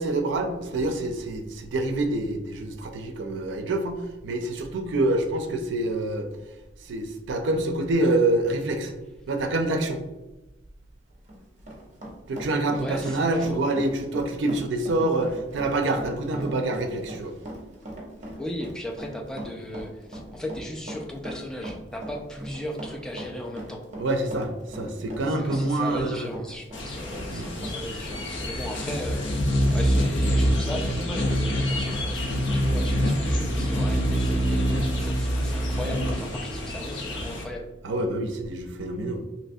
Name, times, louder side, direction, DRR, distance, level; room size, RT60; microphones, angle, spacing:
voice 1, 0.0-6.3 6.8-8.9 9.3-10.0 12.3-17.3 24.0-26.3 27.3-27.5 37.8-39.2, right 2 dB, 75° right, 5 dB, 0.4 m, -26 dB
Run, 11.1-27.8 28.1-28.2 28.7-28.9, right 1 dB, 40° right, 0.8 m, -40 dB
voice 2, 12.8-13.6 18.4-23.8 25.3-29.4 29.7-34.7 35.0-37.6, left 1 dB, 5° left, 1 dB, 0.3 m, -37 dB
sound 1, 26.7-37.4, equal, 75° left, 0.5 m, -25 dB
3.2 x 2.9 x 2.6 m, 1.0 s
head